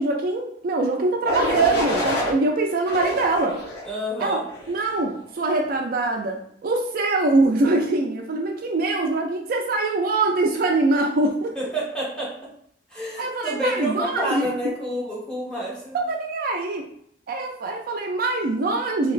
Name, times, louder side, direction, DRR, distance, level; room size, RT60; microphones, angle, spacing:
voice 1, 0.0-3.6 4.2-11.6 13.2-14.7 15.9-16.9 17.3-19.1, right 2 dB, 50° right, 1 dB, 0.4 m, -23 dB
sound 1, 1.3-2.3 2.9-3.9 4.5-4.9, left 1 dB, 55° left, 1.0 m, -28 dB
voice 2, 3.8-4.5 11.5-12.3 12.9-16.0, equal, 5° left, -5 dB, 0.9 m, -28 dB
3.0 x 2.8 x 2.5 m, 0.68 s
head